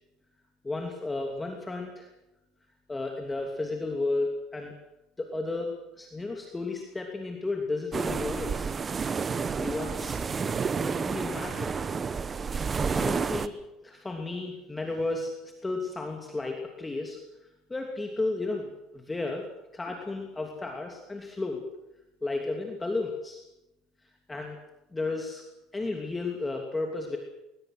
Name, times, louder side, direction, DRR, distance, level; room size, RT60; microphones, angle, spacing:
voice 1, 0.6-2.1 2.9-4.7 5.2-8.8 9.6-10.2 10.8-11.7 12.8-13.6 13.8-15.3 15.6-17.2 17.7-19.4 19.7-21.6 22.2-23.4 24.3-24.6 24.9-25.4 25.7-27.2, left 2 dB, 10° left, 2 dB, 2.8 m, -33 dB
sound 1, 7.9-13.5, right 5 dB, 25° right, 1.0 m, -30 dB
21.0 x 20.0 x 7.9 m, 0.92 s
cardioid pair, 140°, 0 cm